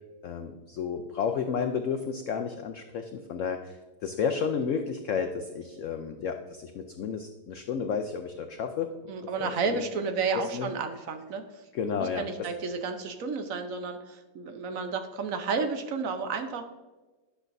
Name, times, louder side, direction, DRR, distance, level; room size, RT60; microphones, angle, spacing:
voice 1, 0.2-9.8 10.3-10.7 11.7-12.3, left 6 dB, 85° left, 6 dB, 0.6 m, -32 dB
voice 2, 9.1-11.6 12.1-16.6, right 4 dB, 60° right, 7 dB, 1.0 m, -31 dB
10.0 x 7.0 x 2.6 m, 1.2 s
omnidirectional pair, 1.9 m